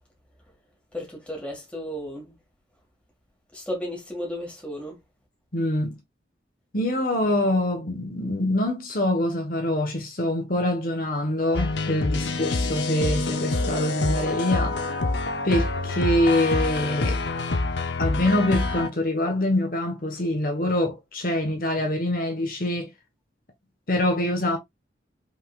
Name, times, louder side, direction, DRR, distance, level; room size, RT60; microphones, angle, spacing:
voice 1, 0.9-2.4 3.5-5.0, equal, 5° left, 1.8 m, -34 dB
voice 2, 5.5-6.0 6.7-14.8 15.4-17.2 18.0-22.9 23.9-24.6, left 1 dB, 50° left, 1.3 m, -25 dB
sound 1, 11.5-18.9, left 2 dB, 70° left, 0.7 m, -26 dB
5.5 x 3.8 x 2.4 m
head